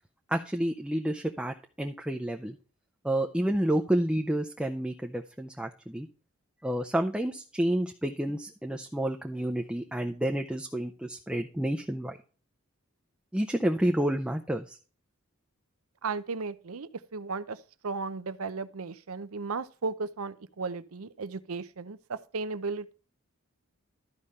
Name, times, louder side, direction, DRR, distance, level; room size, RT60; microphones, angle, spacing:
voice 1, 0.3-2.6 3.0-6.1 6.6-12.2 13.3-14.8, right 1 dB, 5° right, 0.5 m, -29 dB
voice 2, 16.0-17.6 17.8-22.9, right 4 dB, 80° right, 0.7 m, -35 dB
12.5 x 5.1 x 4.1 m
head